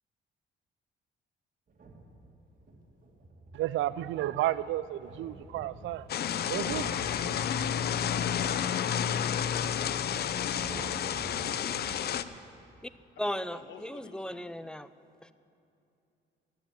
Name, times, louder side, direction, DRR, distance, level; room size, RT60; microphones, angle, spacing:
sound 1, 1.7-12.0, right 2 dB, 40° right, 2.2 m, -49 dB
voice 1, 3.5-6.0 6.5-7.2, right 14 dB, 75° right, 17 dB, 0.4 m, -32 dB
sound 2, 6.1-12.2, left 9 dB, 55° left, 0.5 m, -30 dB
voice 2, 7.2-8.4 13.5-14.5, left 6 dB, 70° left, 7 dB, 1.1 m, -50 dB
voice 3, 13.2-14.9 15.2-15.3, equal, 5° left, 14 dB, 0.4 m, -36 dB
12.5 x 7.2 x 9.0 m, 2.7 s
cardioid pair, 90°, 20 cm